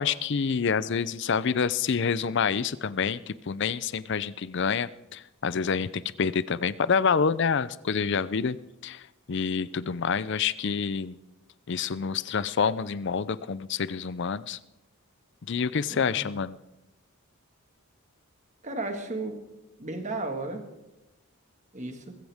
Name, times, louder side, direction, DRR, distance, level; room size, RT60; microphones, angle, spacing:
voice 1, 0.0-8.6 8.8-9.0 9.3-11.2 11.7-14.6 15.5-16.6, left 6 dB, 50° left, 17 dB, 0.5 m, -27 dB
voice 2, 15.9-16.3 18.6-19.4 19.8-20.6 21.7-22.1, right 2 dB, 30° right, 5 dB, 1.8 m, -34 dB
20.5 x 15.5 x 3.6 m, 0.92 s
head